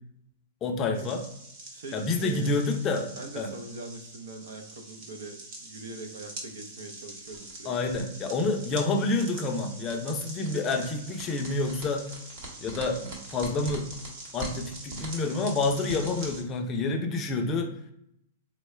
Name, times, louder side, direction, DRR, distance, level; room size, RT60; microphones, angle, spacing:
voice 1, 0.6-1.2 1.9-3.1 3.4-3.5 7.7-12.1 12.6-13.9 14.3-17.7, left 3 dB, 25° left, 4 dB, 0.4 m, -28 dB
sound 1, 0.9-16.4, right 2 dB, 50° right, 1.1 m, -43 dB
voice 2, 1.7-2.5 3.1-8.0, right 2 dB, 75° right, 5 dB, 0.7 m, -42 dB
3.8 x 2.2 x 3.2 m, 0.75 s
hypercardioid pair, 150°, 0 cm